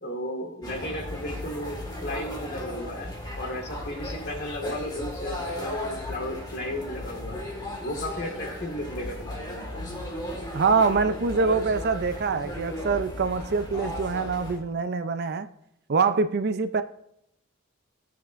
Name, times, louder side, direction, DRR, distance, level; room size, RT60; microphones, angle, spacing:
voice 1, 0.0-7.4 7.8-9.8, left 1 dB, 50° left, 2 dB, 1.8 m, -34 dB
sound 1, 0.6-14.6, left 1 dB, 20° left, 1.7 m, -36 dB
voice 2, 10.5-15.5 15.9-16.8, right 4 dB, 50° right, 11 dB, 0.4 m, -24 dB
13.0 x 6.8 x 2.5 m, 0.78 s
head